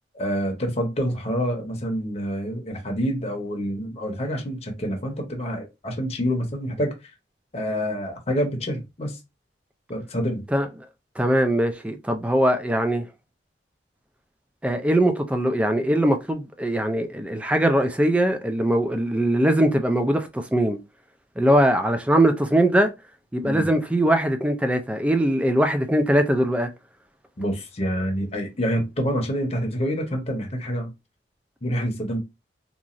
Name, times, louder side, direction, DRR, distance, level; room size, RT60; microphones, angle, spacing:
voice 1, 0.1-6.9 7.5-9.2 9.9-10.4 23.4-23.7 27.4-30.9 31.6-32.2, equal, 35° left, 0.8 m, -27 dB
voice 2, 11.2-13.0 14.6-20.8 21.4-22.9 23.3-26.7, right 1 dB, 5° right, 0.4 m, -21 dB
2.9 x 2.4 x 2.5 m
head